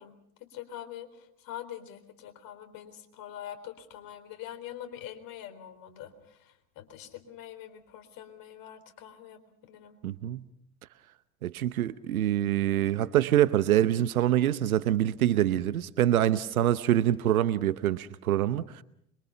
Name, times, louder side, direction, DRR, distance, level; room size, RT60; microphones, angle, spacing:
voice 1, 0.0-10.0, left 11 dB, 55° left, 4.1 m, -44 dB
voice 2, 10.0-10.4 11.4-18.8, right 12 dB, 85° right, 0.9 m, -25 dB
26.5 x 23.5 x 5.9 m
hypercardioid pair, 85°, 42 cm